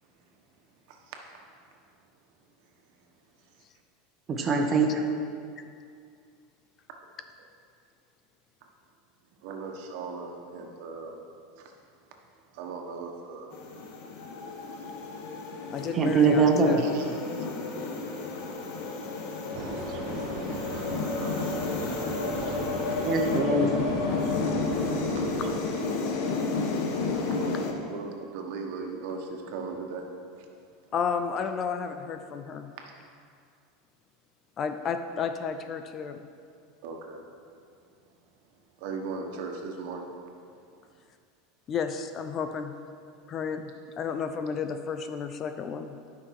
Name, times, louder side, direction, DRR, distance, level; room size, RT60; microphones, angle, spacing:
voice 1, 0.9-1.2 9.4-11.2 11.6-11.7 12.5-13.7 16.8-17.0 21.2-21.9 27.3-30.1 32.8-32.9 36.8-37.2 38.8-40.1, right 4 dB, 60° right, 2 dB, 1.3 m, -38 dB
voice 2, 4.3-4.9 16.0-16.8 23.0-23.7, right 4 dB, 25° right, 2 dB, 1.1 m, -22 dB
sound 1, 13.5-27.7, left 4 dB, 55° left, 1.1 m, -31 dB
voice 3, 15.7-16.8 30.9-32.7 34.6-36.3 41.7-42.8 43.3-46.0, left 6 dB, 30° left, 8 dB, 0.4 m, -32 dB
sound 2, 19.5-25.6, right 9 dB, 40° right, 0.5 m, -39 dB
12.0 x 5.7 x 4.8 m, 2.3 s
supercardioid pair, 155°, 0 cm